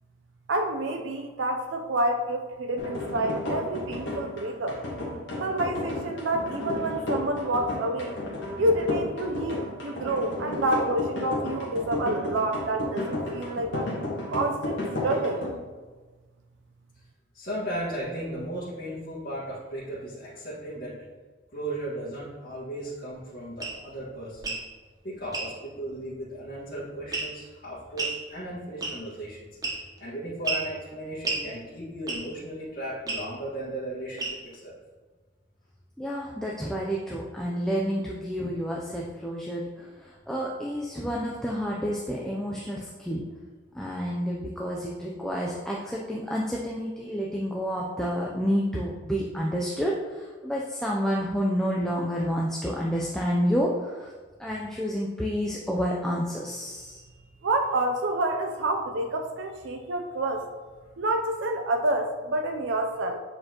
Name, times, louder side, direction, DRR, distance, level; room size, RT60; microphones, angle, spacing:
voice 1, 0.5-4.8 5.4-8.2 8.6-13.9 14.3-15.4 57.4-60.5 61.0-63.2, right 1 dB, 75° right, 3 dB, 0.5 m, -28 dB
sound 1, 2.8-15.5, left 1 dB, 75° left, 1.5 m, -32 dB
voice 2, 17.3-20.9 21.5-24.6 25.0-29.5 30.0-34.7, right 1 dB, 55° left, -13 dB, 1.7 m, -36 dB
sound 2, 23.6-23.8 24.4-24.6 25.3-25.5 27.1-27.5 28.0-28.2 28.8-29.1 29.6-30.0 30.4-30.7 31.2-31.4 32.1-32.4 33.1-33.3 34.2-34.5, right 3 dB, 20° right, 0.9 m, -31 dB
voice 3, 36.0-43.2 43.7-54.1 54.4-57.0, equal, 5° left, -3 dB, 0.4 m, -29 dB
7.5 x 4.4 x 2.9 m, 1.3 s
head